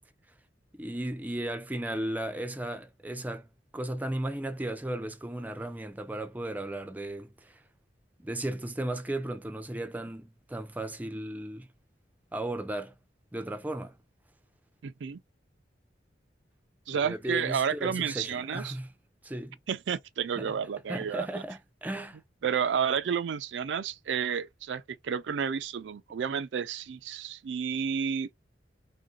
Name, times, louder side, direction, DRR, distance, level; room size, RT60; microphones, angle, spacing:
voice 1, 0.7-3.5 3.7-7.6 8.2-11.7 12.3-12.9 13.3-14.0 16.9-18.9 19.2-19.6 20.4-20.5 20.9-22.2, right 1 dB, 10° right, 0.5 m, -35 dB
voice 2, 14.8-15.2 16.9-18.8 19.7-21.3 22.4-28.3, right 7 dB, 80° right, 0.4 m, -31 dB
3.6 x 2.5 x 3.8 m
head